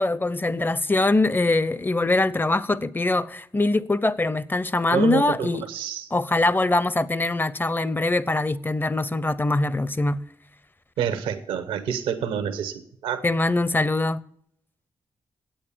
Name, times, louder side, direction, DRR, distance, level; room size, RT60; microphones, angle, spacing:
voice 1, 0.0-5.6 6.1-10.2 13.2-14.2, left 2 dB, 20° left, 0.6 m, -23 dB
voice 2, 4.9-6.1 11.0-13.2, right 8 dB, 90° right, 0.9 m, -28 dB
8.8 x 8.4 x 6.8 m
supercardioid pair, 40°, 9 cm